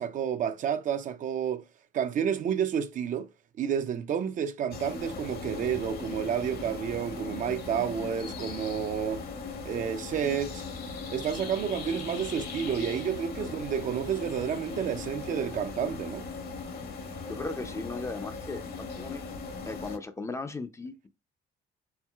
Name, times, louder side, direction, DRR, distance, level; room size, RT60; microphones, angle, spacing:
voice 1, 0.0-1.6 1.9-3.3 3.6-9.2 9.6-10.6 11.1-16.3, right 8 dB, 50° right, 0.5 m, -30 dB
sound 1, 4.7-20.0, left 4 dB, 60° left, 1.1 m, -39 dB
voice 2, 17.3-19.3 19.6-21.1, left 3 dB, 15° left, 0.5 m, -37 dB
4.5 x 3.8 x 2.3 m
cardioid pair, 110°, 17 cm